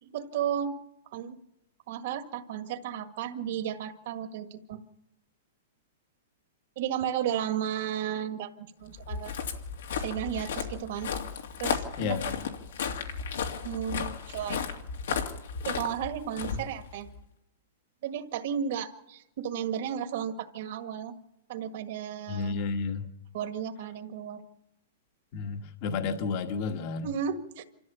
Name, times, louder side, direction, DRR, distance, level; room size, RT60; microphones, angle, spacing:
voice 1, 0.0-0.8 1.1-1.4 1.9-4.8 6.7-8.5 8.8-9.3 10.0-11.1 11.6-12.2 13.6-14.6 15.6-17.1 18.0-21.2 21.5-22.6 23.3-24.4 27.0-27.6, right 9 dB, 50° right, 7 dB, 1.7 m, -33 dB
Walk footsteps, 8.9-17.2, left 6 dB, 80° left, 2.7 m, -34 dB
voice 2, 22.3-23.1 25.3-27.1, left 5 dB, 40° left, 6 dB, 1.4 m, -31 dB
26.5 x 14.0 x 7.1 m, 0.91 s
hypercardioid pair, 165°, 0 cm